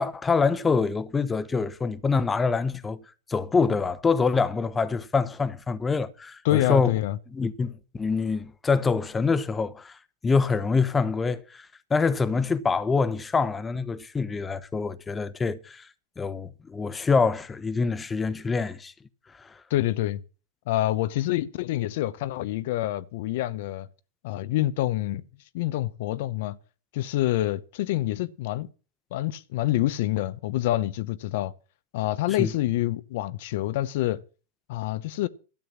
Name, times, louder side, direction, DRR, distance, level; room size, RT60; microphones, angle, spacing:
voice 1, 0.0-3.0 3.3-6.9 7.3-15.9 16.2-18.9 19.4-19.6 32.4-32.5, left 4 dB, 15° left, 1.0 m, -25 dB
voice 2, 6.4-7.2 19.7-20.2 20.7-23.9 24.2-25.2 25.5-26.6 26.9-28.7 29.1-31.5 31.9-34.2 34.7-35.3, left 15 dB, 65° left, 0.7 m, -27 dB
12.5 x 7.8 x 7.3 m
hypercardioid pair, 105°, 0 cm